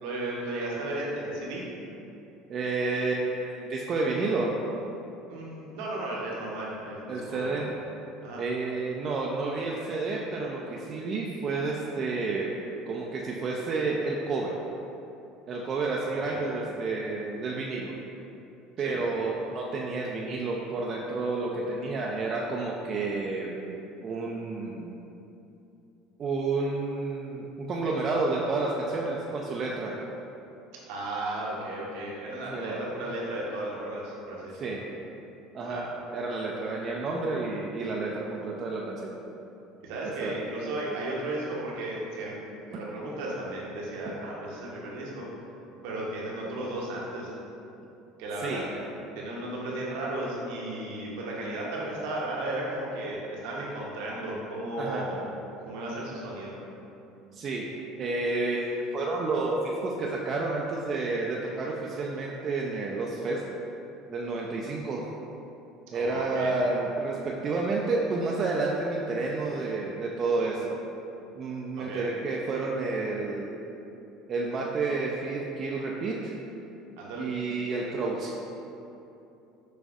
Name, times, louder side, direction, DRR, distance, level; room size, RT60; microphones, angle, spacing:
voice 1, 0.0-1.7 5.3-7.6 8.2-8.4 16.1-16.4 18.8-19.0 30.9-34.8 35.6-35.9 39.8-42.4 42.7-45.3 45.8-47.3 48.2-48.8 49.2-55.2 55.6-56.5 65.9-66.5 71.8-72.1 77.0-77.3, right 1 dB, 70° right, -4 dB, 0.8 m, -34 dB
voice 2, 2.5-4.6 7.1-7.7 8.4-12.5 12.9-14.5 15.5-17.9 18.8-23.6 24.0-24.9 26.2-30.0 32.5-32.8 34.6-34.8 35.5-35.8 36.1-39.1 40.0-40.3 48.4-48.8 54.8-55.1 57.3-57.7 58.0-63.4 64.1-65.1 65.9-70.7 71.4-73.6 74.3-76.4 77.2-78.3, right 3 dB, 45° right, -3 dB, 0.4 m, -30 dB
6.1 x 2.4 x 2.4 m, 2.9 s
hypercardioid pair, 70°, 0 cm